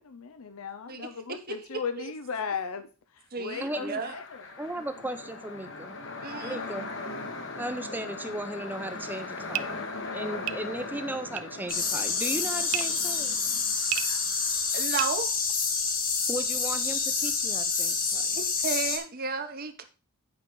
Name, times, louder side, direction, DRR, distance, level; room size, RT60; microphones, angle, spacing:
voice 1, 0.0-2.9 3.4-4.4, left 6 dB, 70° left, 9 dB, 0.7 m, -36 dB
voice 2, 0.9-1.8 3.3-4.1 6.2-6.6 13.5-13.6 13.9-14.2 14.7-15.3 18.3-19.8, right 5 dB, 40° right, 8 dB, 1.1 m, -34 dB
sound 1, 3.5-14.8, left 3 dB, 55° left, 1.4 m, -40 dB
voice 3, 3.6-4.0 4.6-6.0 6.4-6.9 7.6-9.8 10.1-13.4 16.3-18.4, right 1 dB, 10° right, 8 dB, 0.7 m, -36 dB
sound 2, 9.4-15.9, right 14 dB, 80° right, 0.5 m, -37 dB
sound 3, 11.7-19.0, left 5 dB, 40° left, 1.7 m, -28 dB
8.6 x 5.3 x 4.7 m, 0.33 s
head